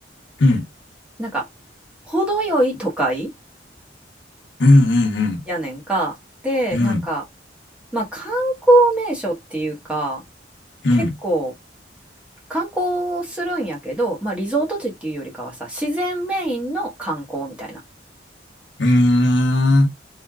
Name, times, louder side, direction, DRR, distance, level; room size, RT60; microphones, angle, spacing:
voice 1, 2.1-3.3 5.5-6.1 6.4-7.2 7.9-10.2 11.0-11.5 12.5-17.8, right 1 dB, 5° right, 1.1 m, -23 dB
voice 2, 4.6-5.4 6.7-7.0 10.8-11.1 18.8-19.9, left 1 dB, 85° left, 0.9 m, -16 dB
3.2 x 2.8 x 2.3 m
head